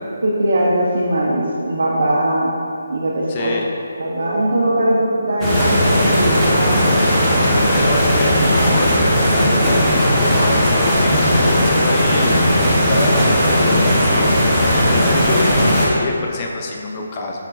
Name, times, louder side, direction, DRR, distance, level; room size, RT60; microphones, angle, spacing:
voice 1, 0.0-2.5 2.9-3.5 4.0-6.9, right 1 dB, 65° right, -5 dB, 0.5 m, -20 dB
voice 2, 3.3-3.6 7.4-17.4, left 3 dB, 30° left, 0 dB, 0.3 m, -26 dB
sound 1, 3.9-14.9, right 5 dB, 85° right, 1.0 m, -34 dB
sound 2, 5.4-15.9, equal, 5° left, 0.7 m, -16 dB
5.7 x 2.2 x 2.6 m, 2.7 s
figure-of-eight pair, 150°, 0 cm